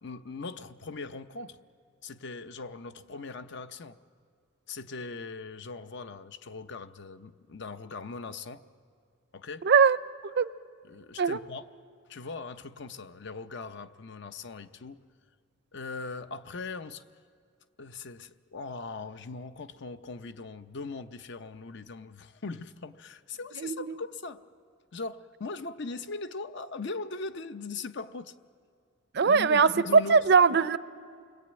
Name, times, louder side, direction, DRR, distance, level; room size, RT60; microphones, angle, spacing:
voice 1, 0.0-1.6 2.0-4.0 4.7-8.6 9.3-9.7 10.8-11.6 12.1-15.0 15.7-17.0 17.8-24.4 24.9-28.3 29.2-30.2, left 4 dB, 60° left, 11 dB, 0.7 m, -40 dB
voice 2, 9.6-10.0 10.2-10.5 11.2-11.4 23.6-23.9 29.1-30.8, right 5 dB, 55° right, 15 dB, 0.6 m, -21 dB
29.5 x 21.5 x 8.9 m, 2.2 s
head